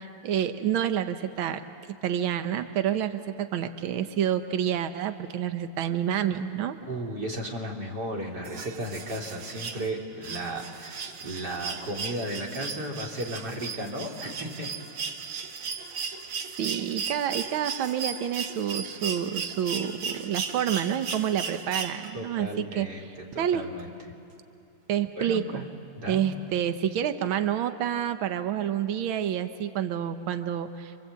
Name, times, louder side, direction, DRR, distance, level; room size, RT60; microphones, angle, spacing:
voice 1, 0.0-1.6 2.0-6.8 16.6-22.9 23.4-23.7 24.9-25.6 26.1-31.0, right 9 dB, 90° right, 9 dB, 1.1 m, -28 dB
voice 2, 6.9-14.7 22.1-23.9 25.1-25.6 26.0-26.3, right 1 dB, 35° right, 0 dB, 3.1 m, -35 dB
sound 1, 8.4-22.4 23.8-23.9, right 6 dB, 60° right, 1.5 m, -36 dB
28.0 x 25.0 x 8.2 m, 2.7 s
omnidirectional pair, 3.5 m